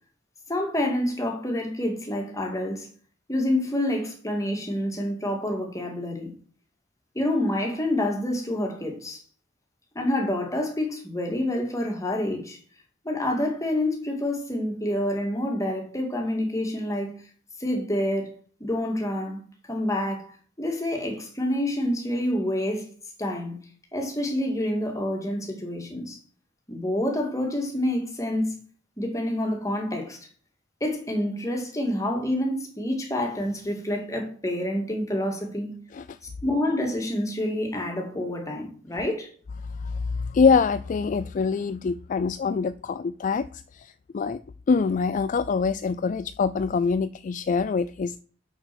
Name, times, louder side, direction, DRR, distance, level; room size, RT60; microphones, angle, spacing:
voice 1, 0.5-2.9 3.3-6.3 7.1-9.2 9.9-12.6 13.0-17.1 17.6-18.3 18.6-19.4 19.7-20.3 20.6-22.9 23.2-23.6 23.9-26.2 26.7-28.6 29.0-30.2 30.8-35.7 36.4-39.3, left 1 dB, 15° left, 2.3 m, -27 dB
voice 2, 39.8-44.4 44.7-48.2, left 5 dB, 40° left, 0.3 m, -25 dB
6.9 x 6.3 x 6.0 m
head